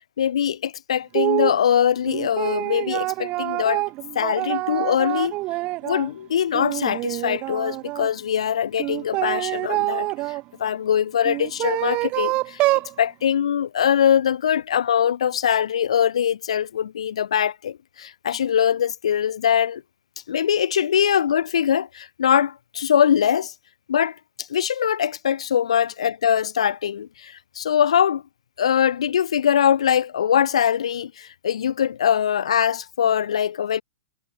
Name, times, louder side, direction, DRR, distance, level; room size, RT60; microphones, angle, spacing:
voice 1, 0.2-3.8 4.2-5.4 5.8-12.6 13.0-19.8 20.3-23.5 23.9-28.2 28.6-33.8, left 9 dB, 80° left, 3.4 m, -22 dB
sound 1, 1.1-1.6 2.1-6.1 6.5-8.1 8.8-10.4 11.2-12.9, right 20 dB, 35° right, 3.8 m, -26 dB
hypercardioid pair, 130°, 3 cm